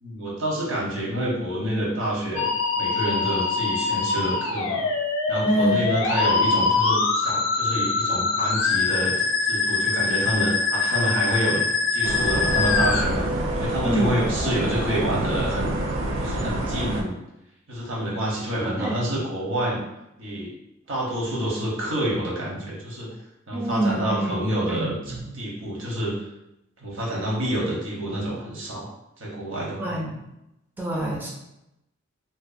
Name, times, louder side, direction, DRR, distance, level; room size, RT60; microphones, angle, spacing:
voice 1, 0.0-2.5 2.8-4.8 5.3-11.6 11.9-15.7 16.2-17.1 17.7-19.8 20.2-20.5 20.9-23.1 23.5-26.1 26.8-28.9 29.2-30.0, right 1 dB, 70° right, -4 dB, 0.9 m, -28 dB
Musical instrument, 2.4-13.0, left 4 dB, 70° left, 0.4 m, -23 dB
voice 2, 5.5-5.8 13.9-14.1 18.8-19.2 23.5-24.3 24.7-25.3 29.8-30.2 30.8-31.3, right 1 dB, 10° right, -3 dB, 0.3 m, -26 dB
sound 1, 12.0-17.0, right 1 dB, 85° right, 0.4 m, -27 dB
2.6 x 2.2 x 2.5 m, 0.87 s
head